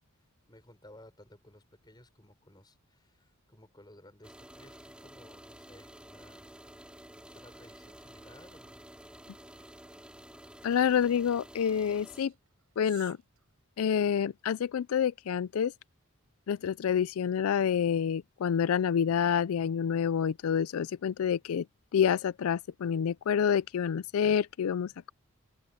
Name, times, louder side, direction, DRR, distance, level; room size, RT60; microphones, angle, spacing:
voice 1, 0.5-6.5 7.2-8.8, left 1 dB, 20° left, 5.8 m, -56 dB
sound 1, 4.2-12.2, right 1 dB, 5° right, 5.3 m, -51 dB
sound 2, 7.5-14.3, right 14 dB, 90° right, 6.7 m, -61 dB
voice 2, 10.6-12.3 12.8-13.2 13.8-15.7 16.5-21.6 21.9-25.1, left 8 dB, 80° left, 0.4 m, -28 dB
open air
head